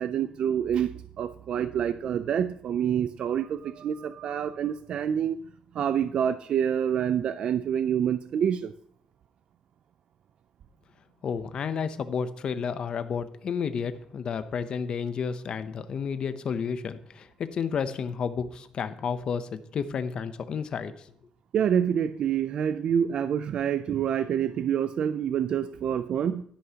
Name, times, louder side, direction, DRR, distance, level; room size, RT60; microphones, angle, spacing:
voice 1, 0.0-5.4 5.7-8.7 21.5-26.4, right 8 dB, 50° right, 12 dB, 0.3 m, -27 dB
voice 2, 11.2-21.1, left 6 dB, 45° left, 11 dB, 0.6 m, -31 dB
11.5 x 10.5 x 2.8 m, 0.66 s
cardioid pair, 160°, 2 cm